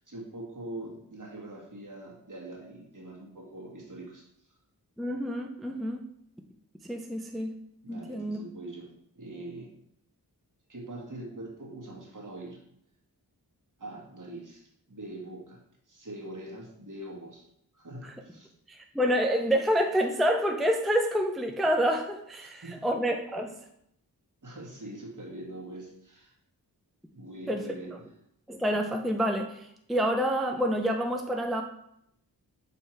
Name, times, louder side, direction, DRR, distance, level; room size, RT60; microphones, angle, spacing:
voice 1, 0.0-4.3 7.8-8.9 9.2-9.7 10.7-12.6 13.8-17.5 17.7-18.5 22.4-22.9 24.4-26.3 27.1-28.0, right 1 dB, 50° right, -1 dB, 1.9 m, -43 dB
voice 2, 5.0-6.0 6.8-7.5 7.9-8.4 18.7-23.5 27.5-27.6 28.5-31.6, equal, ahead, 4 dB, 0.5 m, -28 dB
6.6 x 3.3 x 4.4 m, 0.75 s
cardioid pair, 55°, 39 cm